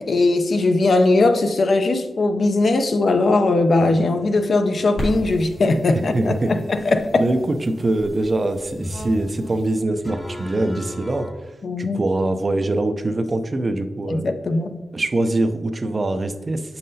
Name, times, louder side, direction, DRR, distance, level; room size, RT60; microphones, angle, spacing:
voice 1, 0.0-7.3 11.6-12.0 14.1-14.8, left 2 dB, 55° left, 8 dB, 0.5 m, -19 dB
sound 1, 3.8-11.3, equal, 15° left, 0.8 m, -40 dB
sound 2, 4.9-9.8, equal, 80° left, 1.6 m, -34 dB
voice 2, 5.9-6.5 7.2-11.3 11.8-14.3 14.9-16.8, right 2 dB, 35° right, 7 dB, 0.4 m, -23 dB
7.5 x 5.6 x 2.7 m, 1.2 s
wide cardioid pair, 110°, 0 cm